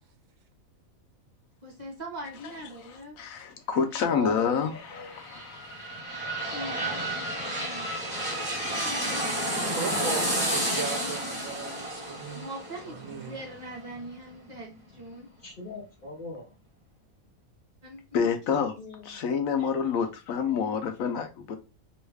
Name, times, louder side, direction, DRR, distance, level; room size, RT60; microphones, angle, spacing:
voice 1, 1.6-3.2 3.8-4.3 6.4-7.9 8.7-10.5 12.3-15.3 17.8-18.6, right 1 dB, 35° right, -2 dB, 1.0 m, -43 dB
voice 2, 3.2-5.8 18.1-18.7 19.0-21.6, left 6 dB, 85° left, 6 dB, 1.1 m, -28 dB
voice 3, 4.1-5.2 15.4-16.5 18.8-19.2, left 2 dB, 45° left, -1 dB, 1.1 m, -39 dB
sound 1, 4.9-14.5 14.9-15.0, right 1 dB, 5° right, 1.2 m, -31 dB
voice 4, 9.5-12.5 12.9-13.4, right 6 dB, 75° right, 5 dB, 1.0 m, -38 dB
3.1 x 2.3 x 3.2 m, 0.28 s
omnidirectional pair, 1.4 m